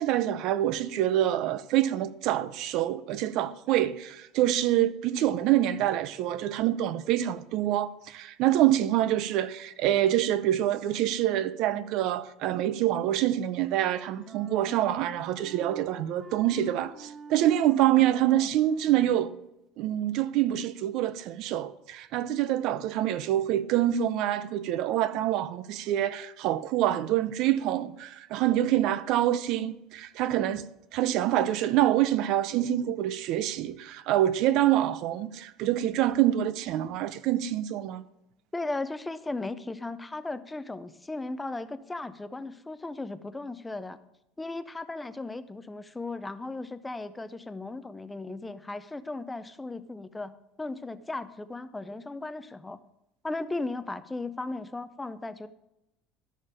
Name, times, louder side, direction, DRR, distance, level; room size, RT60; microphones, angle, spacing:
voice 1, 0.0-19.3 19.8-30.6 30.9-38.0, right 12 dB, 50° right, 0.5 m, -26 dB
Wind instrument woodwind instrument, 13.4-19.5, right 2 dB, 10° right, 1.2 m, -48 dB
voice 2, 38.5-44.0 44.4-50.3 50.6-52.8 53.2-55.5, left 2 dB, 10° left, 0.5 m, -36 dB
12.5 x 6.6 x 4.9 m
cardioid pair, 165°, 0 cm